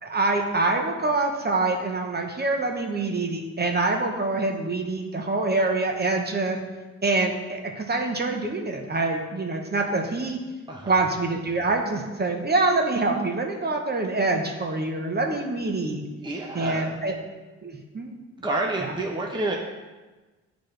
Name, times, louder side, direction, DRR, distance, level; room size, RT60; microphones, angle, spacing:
voice 1, 0.0-6.6 7.0-10.4 10.9-16.0 16.5-17.1 17.6-18.1 18.8-18.9, right 2 dB, 35° right, 2 dB, 1.0 m, -25 dB
voice 2, 10.7-11.0 16.2-17.0 18.4-19.6, right 2 dB, 15° right, -1 dB, 0.8 m, -29 dB
10.0 x 4.1 x 3.3 m, 1.2 s
cardioid pair, 75°, 30 cm